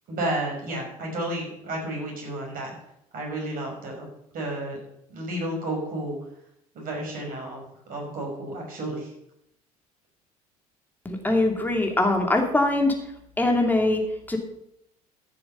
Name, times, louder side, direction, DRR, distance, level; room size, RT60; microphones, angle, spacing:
voice 1, 0.1-2.7 3.1-4.1 4.3-4.8 5.1-6.2 6.7-7.6 7.9-9.1, right 1 dB, 50° right, 0 dB, 5.7 m, -31 dB
voice 2, 11.0-12.9 13.4-14.4, left 2 dB, 10° left, 1 dB, 2.8 m, -22 dB
14.5 x 6.9 x 5.5 m, 0.77 s
figure-of-eight pair, 55°, 19 cm